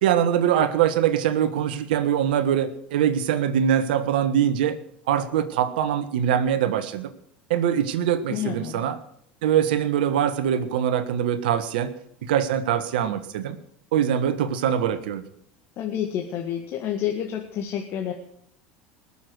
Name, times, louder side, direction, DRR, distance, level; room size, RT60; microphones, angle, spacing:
voice 1, 0.0-4.8 5.1-7.1 7.5-9.0 9.4-11.9 12.2-13.6 13.9-15.2, right 9 dB, 75° right, 11 dB, 1.4 m, -23 dB
voice 2, 8.3-8.8 15.8-18.1, left 10 dB, 55° left, 2 dB, 1.9 m, -29 dB
20.0 x 7.2 x 8.0 m, 0.69 s
hypercardioid pair, 80°, 5 cm